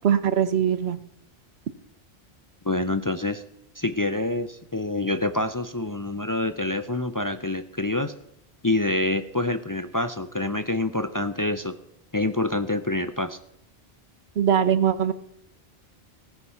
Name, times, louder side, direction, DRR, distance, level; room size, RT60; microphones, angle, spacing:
voice 1, 0.0-1.0 14.4-15.1, right 8 dB, 85° right, 14 dB, 1.2 m, -21 dB
voice 2, 2.6-3.4 3.8-8.1 8.6-11.7 12.1-13.4, left 2 dB, 25° left, 11 dB, 0.5 m, -26 dB
16.0 x 9.7 x 5.6 m, 0.76 s
omnidirectional pair, 1.0 m